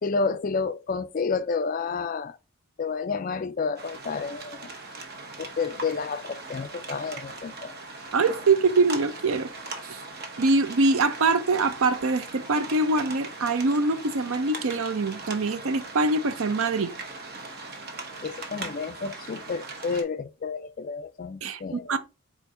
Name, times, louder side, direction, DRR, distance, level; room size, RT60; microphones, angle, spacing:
voice 1, 0.0-2.4 2.8-4.7 5.4-7.7 18.2-22.0, left 4 dB, 40° left, 0.3 m, -30 dB
sound 1, 3.7-20.0, right 3 dB, 45° right, 0.9 m, -40 dB
voice 2, 8.1-9.5 9.9-10.0 10.4-16.9 21.4-22.0, right 3 dB, 70° right, 0.5 m, -24 dB
4.5 x 4.4 x 2.5 m
head